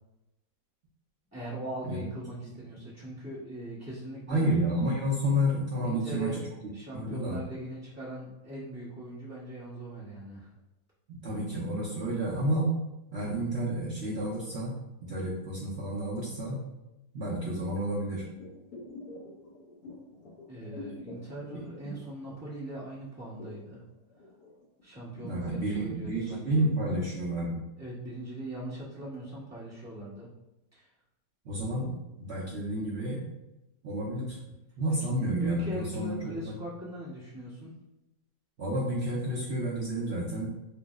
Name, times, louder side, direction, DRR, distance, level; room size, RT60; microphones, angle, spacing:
voice 1, 1.3-4.4 5.8-6.4 6.7-10.5 20.5-23.8 24.8-26.6 27.8-30.3 30.7-30.8 35.0-37.7, right 1 dB, 15° right, -10 dB, 0.6 m, -40 dB
voice 2, 4.3-6.4 6.9-7.4 11.1-12.8 13.1-14.8 15.0-16.6 17.1-18.2 25.3-27.6 31.5-33.3 33.8-34.4 34.8-36.2 36.4-36.5 38.6-40.5, right 1 dB, 65° right, -7 dB, 0.6 m, -30 dB
sound 1, 18.4-22.8 23.1-26.6 27.0-27.1, left 1 dB, 60° left, 1.2 m, -47 dB
3.1 x 2.0 x 3.4 m, 0.93 s
omnidirectional pair, 2.0 m